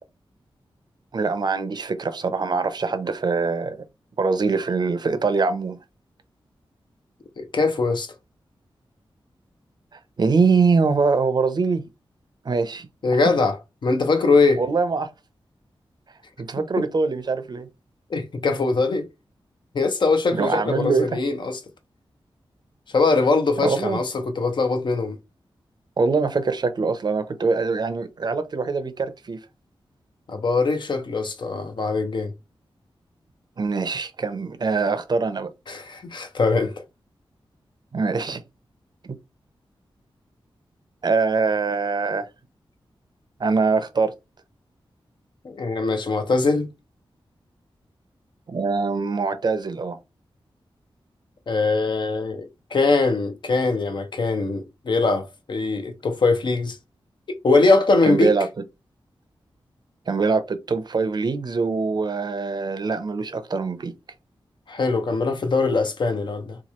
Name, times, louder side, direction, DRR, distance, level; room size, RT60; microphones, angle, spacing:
voice 1, 1.1-3.8 4.2-5.8 10.2-11.8 12.4-12.9 14.6-15.1 16.4-17.7 20.3-21.2 23.6-24.0 26.0-29.4 33.6-35.5 37.9-38.4 41.0-42.3 43.4-44.1 48.5-50.0 58.1-58.5 60.1-63.9, right 4 dB, 50° right, 0.6 m, -23 dB
voice 2, 7.4-8.1 13.0-13.6 13.8-14.6 18.1-19.0 19.7-21.6 22.9-25.2 30.3-32.3 35.7-36.7 45.4-46.7 51.5-56.8 57.4-58.3 64.7-66.6, left 3 dB, 55° left, 0.7 m, -22 dB
2.9 x 2.3 x 4.2 m
wide cardioid pair, 115°, 9 cm